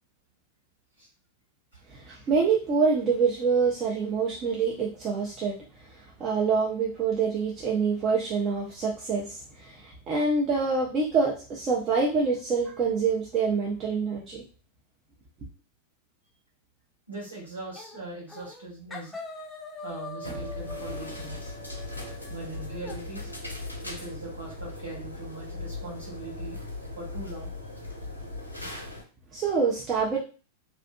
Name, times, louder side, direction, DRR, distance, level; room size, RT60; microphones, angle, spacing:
voice 1, 1.9-5.6 6.2-14.4 29.3-30.2, right 5 dB, 30° right, -4 dB, 0.6 m, -26 dB
voice 2, 17.1-19.2 19.8-21.5 22.3-23.3 23.8-26.6 26.9-27.5, right 2 dB, 80° right, -6 dB, 1.4 m, -40 dB
sound 1, 17.8-18.0 18.3-18.6 18.9-23.0, left 2 dB, 10° left, 0.6 m, -42 dB
sound 2, 20.2-29.0, left 2 dB, 85° left, 0.7 m, -38 dB
2.7 x 2.4 x 2.2 m, 0.35 s
figure-of-eight pair, 90°, 0 cm